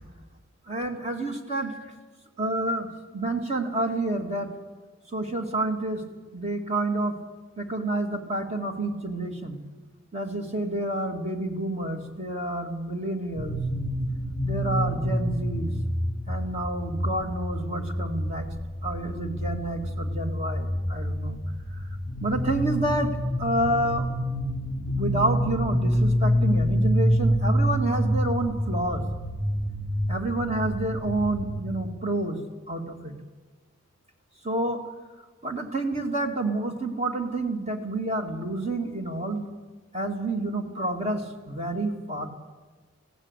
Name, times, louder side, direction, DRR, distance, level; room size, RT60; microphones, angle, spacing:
voice 1, 0.7-1.7 2.4-4.5 5.1-6.0 6.3-7.1 7.6-9.6 10.1-13.6 14.4-15.7 16.3-18.5 18.8-21.4 21.7-21.9 22.2-23.1 23.4-24.1 24.9-29.0 30.1-32.4 32.7-33.1 34.4-34.8 35.4-39.5 39.9-42.3, right 1 dB, 30° right, 4 dB, 2.5 m, -29 dB
sound 1, 13.3-31.6, equal, 5° left, 4.8 m, -27 dB
19.0 x 16.5 x 8.3 m, 1.3 s
head